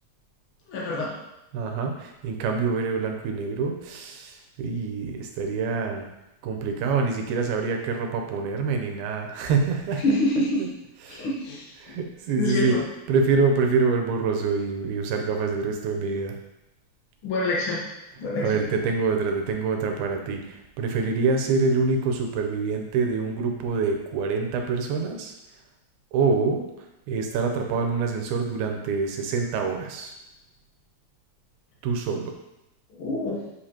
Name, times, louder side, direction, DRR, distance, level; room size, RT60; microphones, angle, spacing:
voice 1, 0.7-1.1 10.0-10.7 11.1-12.0 12.4-12.8 17.2-17.8 18.2-18.6 32.9-33.4, left 2 dB, 70° left, -5 dB, 1.3 m, -26 dB
voice 2, 1.5-6.1 6.4-10.0 10.6-10.7 11.1-11.3 11.8-12.8 13.1-16.4 18.4-25.3 26.1-26.7 27.1-30.1 31.8-32.3, right 4 dB, 85° right, 3 dB, 2.7 m, -26 dB
7.9 x 5.0 x 2.9 m, 0.91 s
omnidirectional pair, 4.3 m